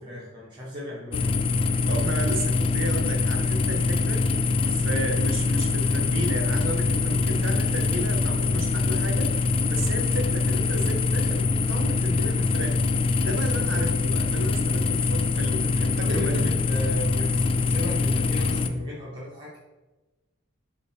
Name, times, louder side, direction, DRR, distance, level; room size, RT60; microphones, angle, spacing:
voice 1, 0.0-1.4 16.0-19.6, left 1 dB, 25° right, -8 dB, 1.4 m, -35 dB
sound 1, 1.1-18.7, left 4 dB, 25° left, 0.3 m, -24 dB
voice 2, 1.9-4.3 4.6-9.3 9.7-12.8 13.2-16.4, right 2 dB, 75° right, 4 dB, 1.0 m, -33 dB
6.4 x 3.8 x 4.2 m, 1.1 s
head